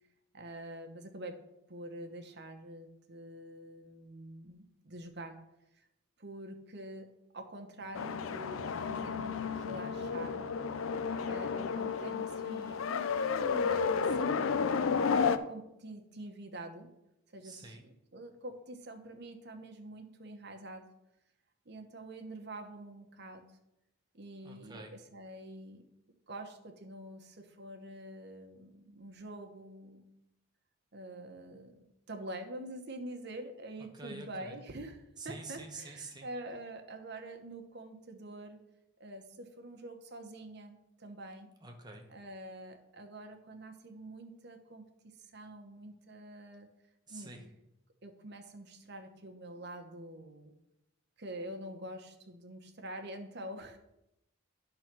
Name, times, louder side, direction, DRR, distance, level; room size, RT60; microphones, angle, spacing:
voice 1, 0.3-1.4 1.7-5.4 6.2-7.1 7.3-10.6 11.3-15.1 15.4-16.9 17.3-20.9 21.6-23.4 24.1-25.8 26.3-30.0 30.9-38.6 39.0-41.5 42.1-46.7 47.1-47.3 48.0-50.5 51.2-53.8, right 1 dB, 55° right, 5 dB, 1.1 m, -46 dB
sound 1, 8.0-15.4, left 5 dB, 80° left, 0.5 m, -32 dB
voice 2, 17.4-17.8 24.4-24.9 33.9-34.6 35.2-36.3 41.6-42.1 47.1-47.5, right 2 dB, 20° right, 2 dB, 1.1 m, -47 dB
11.0 x 3.9 x 6.0 m, 0.88 s
head